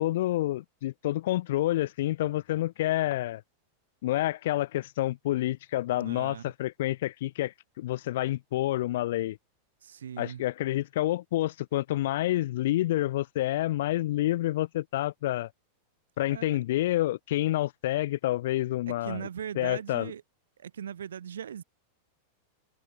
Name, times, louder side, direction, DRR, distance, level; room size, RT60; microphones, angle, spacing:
voice 1, 0.0-3.4 4.0-9.4 10.2-15.5 16.2-19.2 19.6-20.1, left 15 dB, 55° left, 0.5 m, -28 dB
voice 2, 5.9-6.5 9.8-10.4 16.3-16.6 18.9-20.2 20.6-21.6, right 9 dB, 65° right, 7.3 m, -39 dB
figure-of-eight pair, 90°, 0 cm